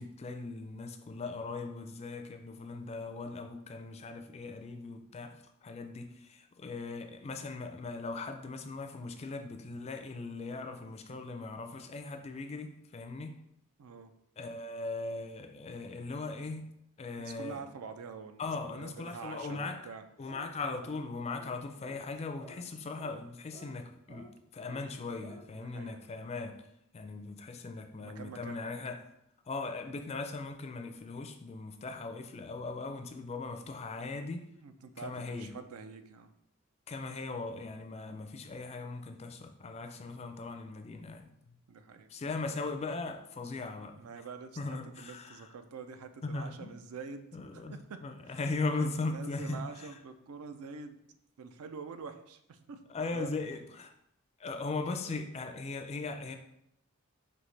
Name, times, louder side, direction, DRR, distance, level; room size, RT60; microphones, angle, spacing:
voice 1, 0.0-13.4 14.4-16.7 17.0-17.6 18.4-19.8 20.2-26.6 26.9-29.0 29.5-34.5 35.0-35.5 36.9-41.3 42.1-44.0 44.6-45.5 46.2-46.7 47.3-49.9 52.9-53.9 54.4-56.4, left 3 dB, 30° left, 6 dB, 0.4 m, -39 dB
voice 2, 13.8-14.1 17.2-20.0 25.5-26.0 28.0-28.7 34.6-36.3 41.7-42.1 43.9-47.3 47.5-48.0 48.2-48.4 48.8-51.0 51.4-53.3, right 5 dB, 80° right, 9 dB, 0.4 m, -46 dB
sound 1, 20.3-20.5 20.8-21.0 21.3-21.5 21.8-22.0 22.4-22.6 23.0-23.1 23.5-23.7 24.1-24.2 24.6-24.8 25.2-25.4, right 1 dB, 55° right, 1.3 m, -52 dB
5.3 x 2.8 x 3.2 m, 0.76 s
head